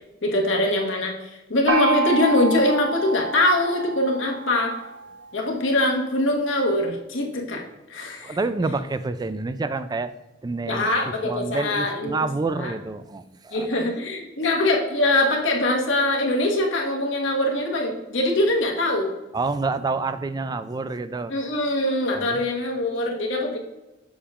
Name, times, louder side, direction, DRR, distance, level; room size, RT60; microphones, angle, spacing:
voice 1, 0.2-4.7 5.3-7.6 7.9-8.4 10.7-12.2 12.5-12.7 13.5-19.1 21.3-23.6, left 1 dB, 80° left, 0 dB, 1.5 m, -23 dB
Gong, 1.7-5.2, right 3 dB, 70° right, 1.3 m, -28 dB
voice 2, 8.2-10.1 10.4-13.8 19.3-21.3 22.1-22.4 23.0-23.1, right 3 dB, 20° right, 13 dB, 0.3 m, -28 dB
7.0 x 6.9 x 2.5 m, 1.0 s
head